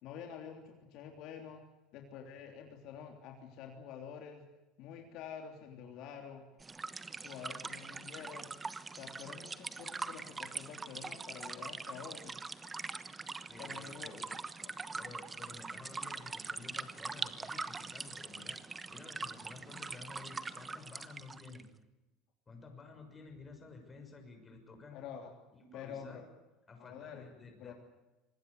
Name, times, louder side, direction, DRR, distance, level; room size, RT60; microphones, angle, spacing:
voice 1, 0.0-1.6 1.9-4.5 4.8-6.4 7.1-8.5 9.0-12.3 13.6-14.3 14.6-14.7 24.9-25.3 25.7-26.2 26.8-27.3 27.6-27.7, left 7 dB, 60° left, 3 dB, 3.2 m, -48 dB
sound 1, 6.6-21.6, right 4 dB, 15° right, 1.1 m, -43 dB
voice 2, 13.5-14.2 14.9-18.6 18.9-21.7 22.5-25.0 25.6-26.2 26.7-27.7, left 4 dB, 20° left, 5 dB, 6.2 m, -52 dB
25.5 x 19.5 x 8.2 m, 1.1 s
supercardioid pair, 130°, 0 cm